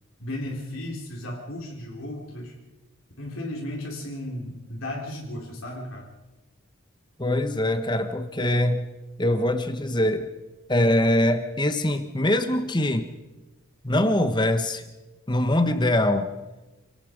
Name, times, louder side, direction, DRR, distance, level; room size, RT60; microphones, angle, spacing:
voice 1, 0.2-2.5 3.2-6.1, left 1 dB, 75° left, -2 dB, 4.0 m, -35 dB
voice 2, 7.2-8.9 9.2-10.3 10.7-13.1 13.8-14.8 15.3-16.3, left 1 dB, 20° left, 8 dB, 1.3 m, -23 dB
27.5 x 18.0 x 5.3 m, 1.1 s
head